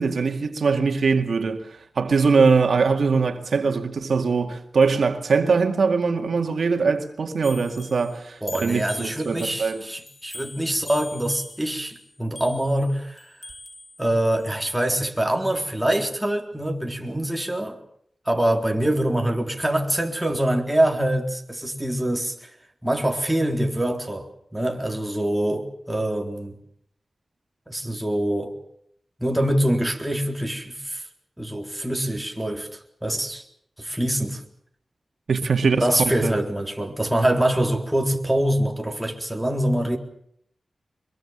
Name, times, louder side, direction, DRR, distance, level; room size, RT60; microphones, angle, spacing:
voice 1, 0.0-9.8 35.3-35.9 36.2-36.3, right 4 dB, 80° right, 2.1 m, -22 dB
sound 1, 7.4-14.7, left 2 dB, 30° left, 2.9 m, -42 dB
voice 2, 8.4-13.2 14.0-17.8 18.3-22.5 22.8-24.3 24.5-26.6 27.7-28.6 29.2-31.0 31.4-33.4 33.8-34.4 35.8-40.0, right 1 dB, 5° right, 3.8 m, -24 dB
23.5 x 22.5 x 7.3 m
wide cardioid pair, 75°, 0 cm